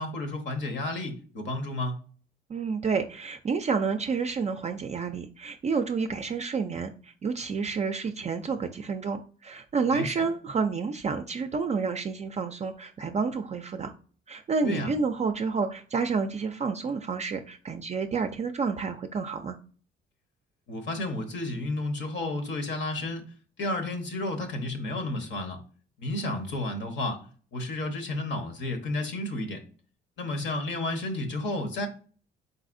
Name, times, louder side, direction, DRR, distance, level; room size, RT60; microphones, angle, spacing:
voice 1, 0.0-2.0 9.9-10.1 14.6-14.9 20.7-23.2 23.6-25.6 26.0-27.3 27.5-29.6 30.2-31.9, left 2 dB, 60° left, 1.0 m, -31 dB
voice 2, 2.5-13.9 14.3-19.6, right 5 dB, 35° right, 0.4 m, -29 dB
4.2 x 4.0 x 2.5 m
cardioid pair, 95°, 21 cm